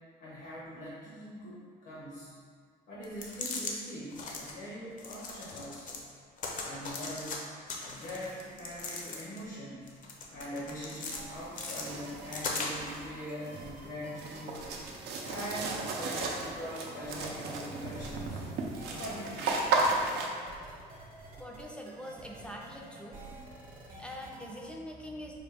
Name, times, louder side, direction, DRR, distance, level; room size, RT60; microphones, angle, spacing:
voice 1, 0.2-2.3 2.9-6.0 6.6-7.4 7.8-10.0 10.3-14.7 15.3-18.4 19.0-19.6, equal, 80° left, -7 dB, 0.9 m, -42 dB
sound 1, 3.0-3.7 4.1-4.5 5.0-6.0 6.4-7.4 7.7-9.5 9.9-11.2 11.5-13.0, left 3 dB, 50° left, 0.6 m, -39 dB
sound 2, 11.0-20.3, right 3 dB, 80° right, 0.5 m, -35 dB
sound 3, 11.1-24.7, right 2 dB, 50° right, 0.8 m, -50 dB
voice 2, 21.4-23.2 23.5-25.4, equal, 5° left, -1 dB, 0.4 m, -44 dB
4.1 x 2.3 x 3.3 m, 2.1 s
cardioid pair, 110°, 17 cm